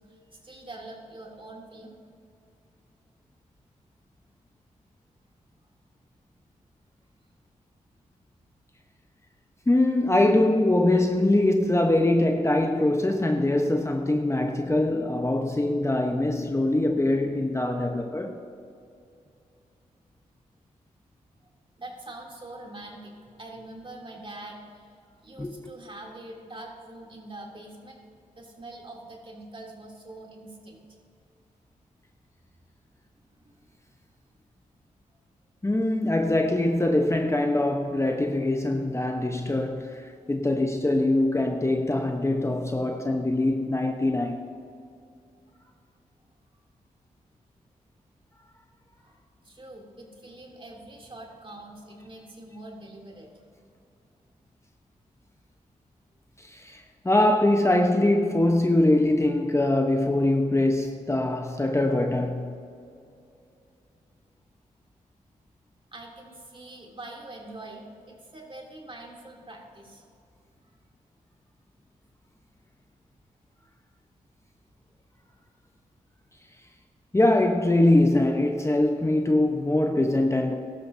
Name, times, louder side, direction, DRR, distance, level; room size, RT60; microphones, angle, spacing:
voice 1, 0.1-1.9 21.8-24.9 25.2-28.0 28.3-30.8 33.2-33.6 34.3-34.4 49.0-53.5 65.9-70.0, right 2 dB, 35° right, 3.0 m, -44 dB
voice 2, 9.7-18.4 25.4-25.7 35.6-44.4 56.4-62.6 77.1-80.5, left 1 dB, 20° left, 1.0 m, -23 dB
16.0 x 12.5 x 2.8 m
supercardioid pair, 40°, 15 cm